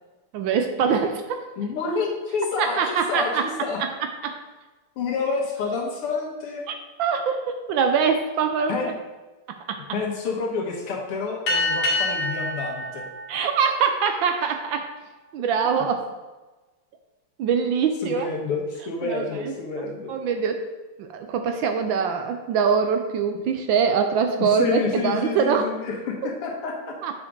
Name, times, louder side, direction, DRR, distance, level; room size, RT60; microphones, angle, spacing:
voice 1, 0.3-1.4 2.6-3.4 3.8-3.9 4.2-4.4 6.7-8.9 9.7-9.8 13.3-14.9 15.3-16.0 17.4-18.3 19.0-19.5 20.1-20.6 21.0-25.7 27.0-27.1, right 6 dB, 75° right, 6 dB, 1.2 m, -23 dB
voice 2, 1.6-3.8 5.0-6.6 8.7-8.9 9.9-13.0 18.0-20.1 24.4-26.9, left 4 dB, 90° left, -1 dB, 2.2 m, -28 dB
sound 1, 11.5-14.4, left 2 dB, 65° left, 2.1 m, -27 dB
8.4 x 5.1 x 3.7 m, 1.2 s
omnidirectional pair, 2.4 m